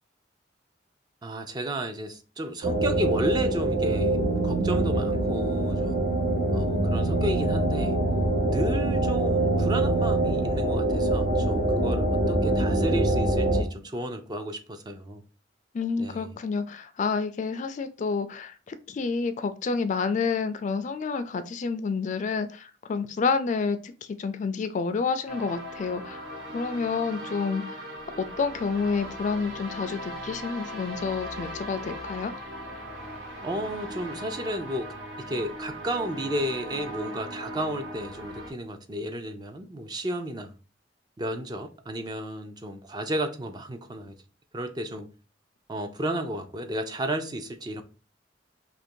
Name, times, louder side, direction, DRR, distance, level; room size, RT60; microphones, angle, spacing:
voice 1, 1.2-6.2 6.5-8.0 8.4-15.2 16.0-16.3 33.4-40.5 41.2-44.1 44.5-45.1 45.7-47.8, equal, 25° right, 0.4 m, -33 dB
sound 1, 2.6-13.6, right 2 dB, 60° right, 0.8 m, -24 dB
voice 2, 15.7-23.8 24.2-26.3 26.5-27.6 28.2-32.3, left 5 dB, 45° left, 0.3 m, -29 dB
sound 2, 25.3-38.5, equal, 85° right, 1.1 m, -39 dB
2.9 x 2.6 x 4.3 m
head